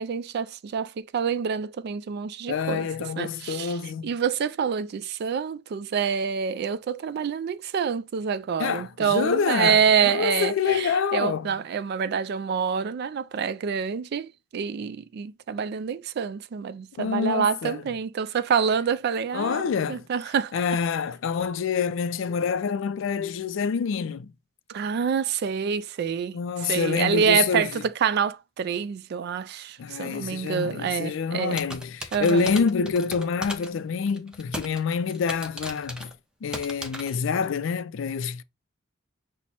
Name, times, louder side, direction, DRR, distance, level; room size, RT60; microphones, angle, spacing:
voice 1, 0.0-20.5 24.7-31.6 32.1-32.5, right 7 dB, 55° right, 0.3 m, -27 dB
voice 2, 2.5-4.1 8.6-11.5 17.0-17.8 19.3-20.0 20.5-24.3 26.3-27.7 29.8-36.1 36.4-38.4, left 6 dB, 65° left, 0.3 m, -27 dB
sound 1, 31.5-33.8 34.1-34.8 35.1-36.1 36.5-37.2, equal, 5° right, 0.6 m, -36 dB
5.9 x 2.1 x 4.1 m
head